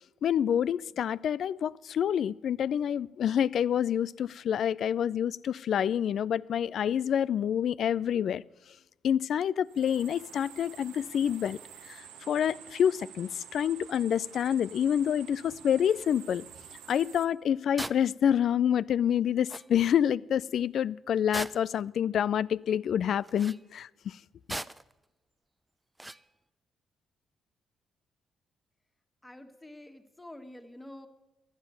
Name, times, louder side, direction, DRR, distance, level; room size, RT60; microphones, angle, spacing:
voice 1, 0.2-8.4 9.0-11.6 11.9-16.4 16.9-23.9, left 9 dB, 65° left, 0.3 m, -27 dB
sound 1, 9.6-17.3, right 9 dB, 85° right, 0.8 m, -50 dB
sound 2, 17.8-18.0 19.2-19.3 19.5-19.7 21.3-21.8 23.2-23.6 24.5-24.9 26.0-26.2, right 1 dB, 15° right, 0.5 m, -38 dB
voice 2, 29.2-31.1, left 1 dB, 10° left, 1.6 m, -47 dB
11.0 x 8.8 x 8.1 m
supercardioid pair, 55°, 0 cm